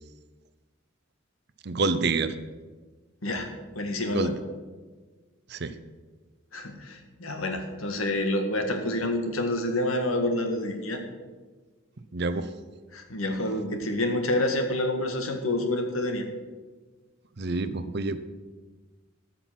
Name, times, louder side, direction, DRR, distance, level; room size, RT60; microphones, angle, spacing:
voice 1, 1.6-2.3 4.1-4.4 5.5-5.7 12.1-12.5 17.4-18.2, right 3 dB, 55° right, 12 dB, 0.7 m, -27 dB
voice 2, 3.8-4.3 6.5-11.0 12.9-16.2, left 1 dB, 90° left, 5 dB, 1.8 m, -28 dB
13.5 x 5.9 x 7.4 m, 1.3 s
head